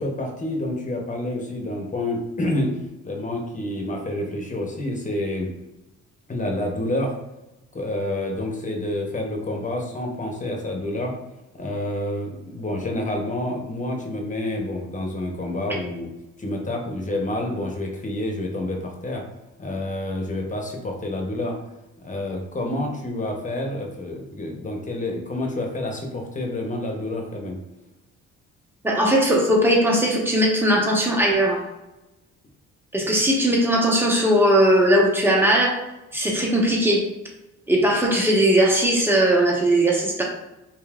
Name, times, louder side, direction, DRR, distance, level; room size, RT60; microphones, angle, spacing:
voice 1, 0.0-2.8 3.0-5.5 6.3-7.1 7.7-11.1 11.5-16.1 16.4-19.2 19.6-21.6 22.0-27.6, left 1 dB, 25° left, 1 dB, 0.9 m, -28 dB
voice 2, 28.8-31.6 32.9-35.8 36.1-37.1 37.7-40.2, right 1 dB, 5° right, -2 dB, 1.1 m, -19 dB
5.3 x 2.7 x 2.4 m, 0.98 s
cardioid pair, 90°, 30 cm